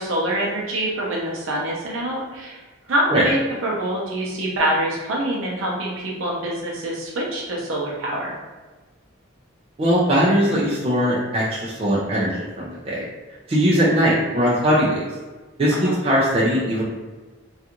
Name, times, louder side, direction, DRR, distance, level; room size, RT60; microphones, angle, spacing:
voice 1, 0.0-2.6 2.9-8.4 15.7-16.0, right 1 dB, 80° right, -3 dB, 0.6 m, -25 dB
voice 2, 9.8-13.0 13.5-15.1 15.6-16.8, equal, 30° right, -7 dB, 0.4 m, -20 dB
2.4 x 2.3 x 2.8 m, 1.3 s
head